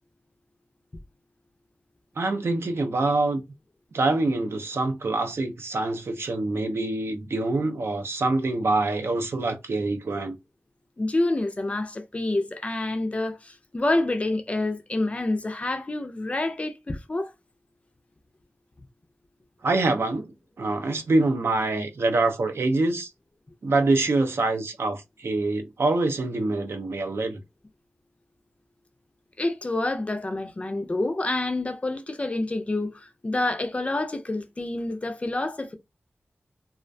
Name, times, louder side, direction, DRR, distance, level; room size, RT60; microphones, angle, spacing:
voice 1, 2.2-3.4 3.9-10.4 19.6-20.3 20.6-23.1 23.6-27.4, right 2 dB, 65° right, 0.5 m, -25 dB
voice 2, 11.0-17.3 29.4-35.8, left 2 dB, 30° left, 0.4 m, -28 dB
2.3 x 2.1 x 2.5 m
wide cardioid pair, 110°, 5 cm